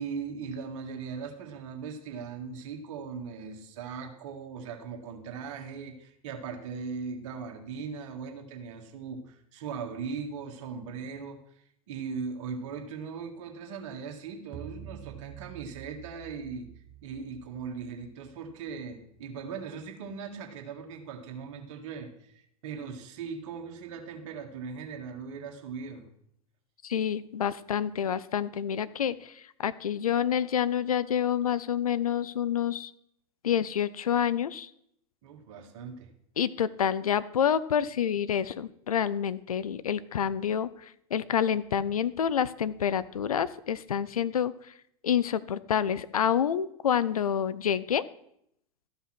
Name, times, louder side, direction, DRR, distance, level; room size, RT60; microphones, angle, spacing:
voice 1, 0.0-11.4 11.9-16.7 17.0-26.1 35.2-36.1, right 5 dB, 55° right, 5 dB, 1.7 m, -39 dB
sound 1, 14.5-19.0, right 10 dB, 30° right, 0.6 m, -48 dB
voice 2, 26.8-32.9 33.4-34.7 36.4-44.7 45.0-48.0, left 8 dB, 75° left, 16 dB, 0.5 m, -28 dB
13.0 x 5.7 x 5.9 m, 0.74 s
figure-of-eight pair, 90°, 19 cm